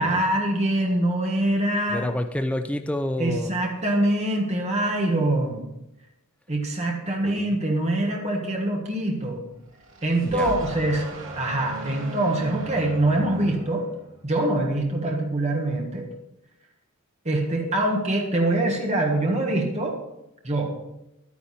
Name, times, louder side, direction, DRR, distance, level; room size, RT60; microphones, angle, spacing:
voice 1, 0.0-2.1 3.2-5.7 6.5-9.4 10.0-11.0 11.3-13.9 14.2-16.1 17.2-20.0 20.4-20.7, right 1 dB, 30° right, 0 dB, 1.6 m, -24 dB
voice 2, 1.9-3.6 7.2-7.5 10.2-10.5, left 1 dB, 5° left, 6 dB, 0.5 m, -29 dB
sound 1, 9.7-14.3, right 2 dB, 65° right, 2.1 m, -37 dB
11.5 x 9.7 x 4.3 m, 0.88 s
head